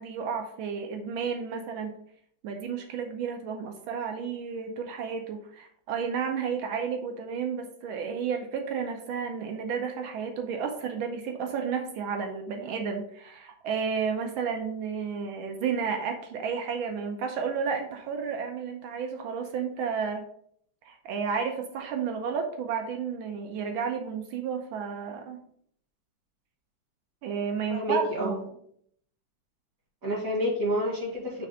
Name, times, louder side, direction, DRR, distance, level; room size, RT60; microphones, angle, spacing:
voice 1, 0.0-1.9 2.4-20.2 20.8-25.4 27.2-28.4, right 6 dB, 85° right, 4 dB, 1.6 m, -32 dB
voice 2, 27.7-28.4 30.0-31.5, equal, 45° right, -3 dB, 2.1 m, -28 dB
6.3 x 3.3 x 5.3 m, 0.66 s
omnidirectional pair, 2.2 m